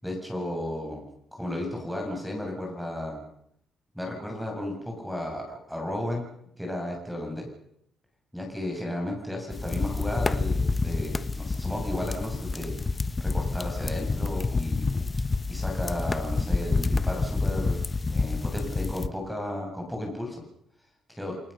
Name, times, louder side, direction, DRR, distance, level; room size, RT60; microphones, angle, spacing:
voice 1, 0.0-1.1 1.3-3.2 3.9-6.3 6.6-7.5 8.3-12.7 13.2-14.8 15.5-17.8 18.1-20.4 21.2-21.3, left 1 dB, ahead, 1 dB, 7.6 m, -33 dB
sound 1, 9.5-19.1, left 3 dB, 25° left, 1.3 m, -28 dB
29.0 x 18.0 x 6.9 m, 0.73 s
cardioid pair, 90°, 0 cm